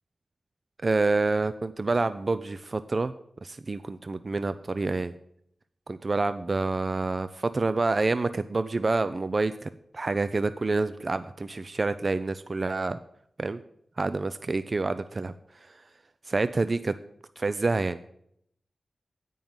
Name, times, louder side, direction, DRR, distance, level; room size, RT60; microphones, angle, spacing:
voice 1, 0.8-3.1 3.4-5.1 5.9-13.0 13.4-13.6 14.0-15.3 16.3-16.9 17.4-18.1, right 3 dB, 40° right, 12 dB, 0.3 m, -27 dB
8.8 x 5.4 x 7.7 m, 0.72 s
wide cardioid pair, 90°, 0 cm